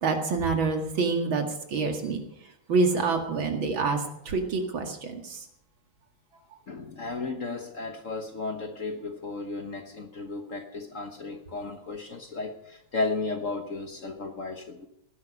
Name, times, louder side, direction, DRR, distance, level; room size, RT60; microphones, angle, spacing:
voice 1, 0.0-2.2 2.7-5.5, right 4 dB, 70° right, 3 dB, 2.8 m, -27 dB
voice 2, 6.7-14.9, left 3 dB, 45° left, 5 dB, 1.3 m, -34 dB
18.5 x 10.5 x 5.4 m, 0.78 s
omnidirectional pair, 2.3 m